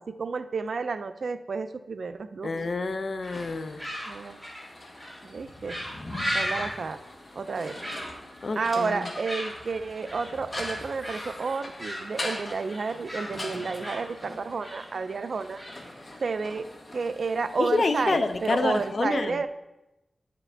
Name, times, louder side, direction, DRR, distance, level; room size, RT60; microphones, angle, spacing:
voice 1, 0.1-2.5 4.1-4.4 5.2-5.8 6.3-7.0 7.4-7.7 8.6-15.6 16.2-16.7 16.9-19.5, right 4 dB, 65° right, 0.4 m, -31 dB
voice 2, 2.4-3.9 8.4-9.1 17.6-19.4, left 3 dB, 55° left, 0.5 m, -27 dB
sound 1, 3.2-16.5, equal, ahead, 2.8 m, -37 dB
sound 2, 3.3-18.9, left 1 dB, 35° left, 1.0 m, -42 dB
9.5 x 4.9 x 3.3 m
wide cardioid pair, 110°, 0 cm